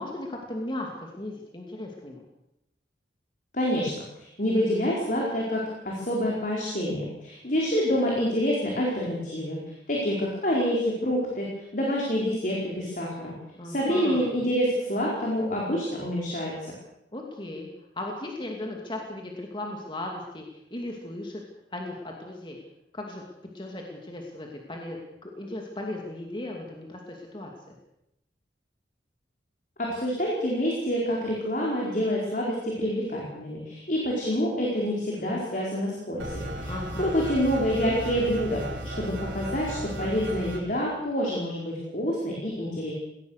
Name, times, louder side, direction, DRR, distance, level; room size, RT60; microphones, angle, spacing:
voice 1, 0.0-2.2 13.5-14.2 17.1-17.7 17.9-21.4 21.7-22.6 22.9-27.5 36.6-37.1, left 1 dB, 25° left, 0 dB, 2.6 m, -37 dB
voice 2, 3.5-3.9 4.4-9.6 9.9-11.5 11.7-13.3 13.6-16.5 29.8-38.6 39.0-42.9, equal, 45° left, -3 dB, 4.8 m, -27 dB
sound 1, 36.2-40.6, right 1 dB, 75° right, 4.5 m, -35 dB
20.5 x 19.0 x 6.7 m, 0.84 s
head